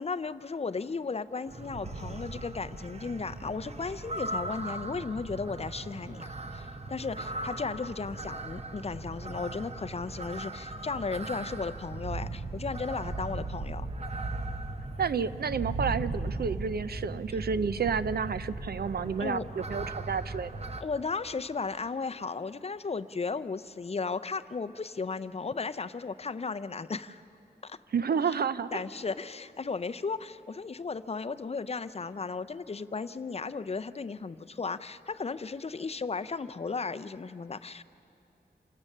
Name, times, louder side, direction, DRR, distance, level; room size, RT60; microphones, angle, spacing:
voice 1, 0.0-13.9 19.2-19.4 20.8-27.2 27.6-27.8 28.7-37.8, left 4 dB, 35° left, 12 dB, 0.5 m, -35 dB
sound 1, 1.5-20.8, right 2 dB, 40° right, 0.9 m, -38 dB
voice 2, 15.0-20.5 27.9-28.8, right 6 dB, 70° right, 14 dB, 0.5 m, -30 dB
27.5 x 17.5 x 6.6 m, 2.8 s
wide cardioid pair, 130°, 17 cm